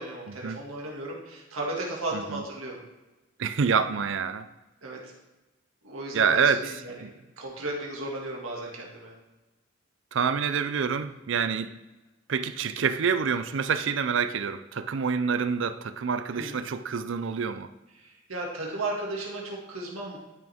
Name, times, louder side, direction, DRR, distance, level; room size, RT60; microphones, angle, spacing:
voice 1, 0.0-2.8 4.8-5.1 5.8-6.5 6.8-6.9 7.4-9.1 16.3-16.7 18.0-20.2, right 2 dB, 90° right, 2.1 m, -35 dB
voice 2, 2.1-2.4 3.4-4.5 6.1-6.7 7.0-7.1 10.1-11.7 12.3-17.7, right 6 dB, 60° right, 0.5 m, -27 dB
12.5 x 6.0 x 3.5 m
head